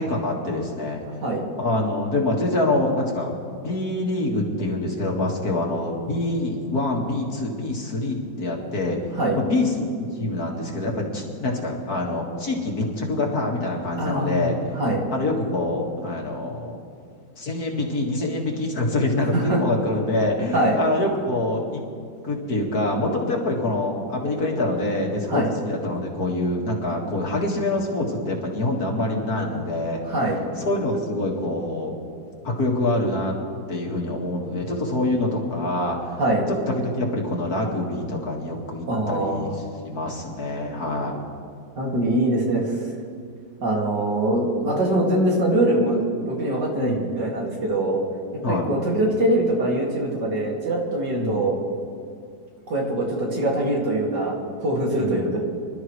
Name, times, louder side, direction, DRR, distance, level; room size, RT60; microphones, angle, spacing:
voice 1, 0.0-1.0 1.6-9.0 9.3-14.6 15.1-16.8 17.4-21.8 22.2-30.0 30.6-31.9 32.4-33.3 33.7-36.2 36.7-39.5 39.9-41.2 46.8-47.1 48.4-48.7 51.2-51.4 55.0-55.4, left 2 dB, 55° left, -1 dB, 2.3 m, -25 dB
voice 2, 14.0-15.0 19.3-19.6 20.5-20.8 25.3-25.5 30.0-30.4 36.2-36.5 38.9-39.5 41.8-42.8 43.6-48.0 48.5-51.5 52.7-54.3 54.6-55.4, right 1 dB, 65° right, -2 dB, 3.0 m, -23 dB
26.0 x 12.5 x 3.2 m, 2.4 s
omnidirectional pair, 2.0 m